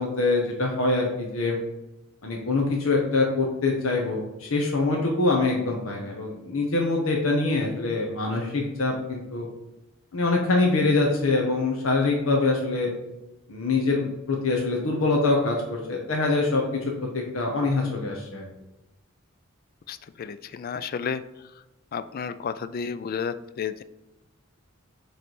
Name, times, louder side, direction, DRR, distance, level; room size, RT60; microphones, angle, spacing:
voice 1, 0.0-1.6 2.2-9.5 10.1-12.9 13.5-18.5, left 3 dB, 75° left, 0 dB, 0.9 m, -24 dB
voice 2, 19.9-21.2 21.9-23.8, left 6 dB, 45° left, 13 dB, 0.3 m, -32 dB
6.4 x 3.3 x 4.6 m, 0.97 s
head